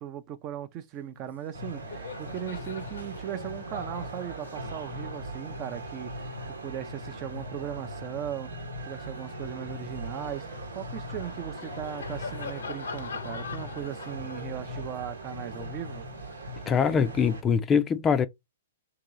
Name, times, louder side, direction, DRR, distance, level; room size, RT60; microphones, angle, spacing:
voice 1, 0.0-6.3 6.6-16.1, right 10 dB, 35° right, 0.5 m, -38 dB
Laughter, 1.1-1.3 1.6-8.3 8.8-17.0, left 5 dB, 80° left, 0.7 m, -45 dB
sound 1, 1.5-17.4, right 1 dB, 90° right, 1.1 m, -39 dB
voice 2, 16.7-18.3, left 6 dB, 20° left, 0.4 m, -23 dB
3.0 x 2.8 x 3.7 m
hypercardioid pair, 120°, 0 cm